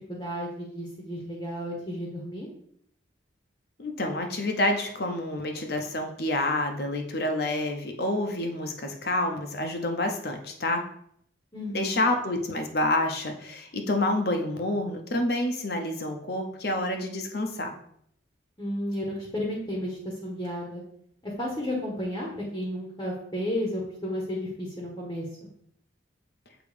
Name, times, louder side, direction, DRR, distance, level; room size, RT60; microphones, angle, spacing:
voice 1, 0.1-2.5 11.5-12.0 18.6-20.8 21.2-25.2, equal, 20° left, -3 dB, 1.0 m, -32 dB
voice 2, 3.8-10.9 11.7-17.7, left 1 dB, 55° left, 4 dB, 0.8 m, -28 dB
7.0 x 3.0 x 5.0 m, 0.69 s
head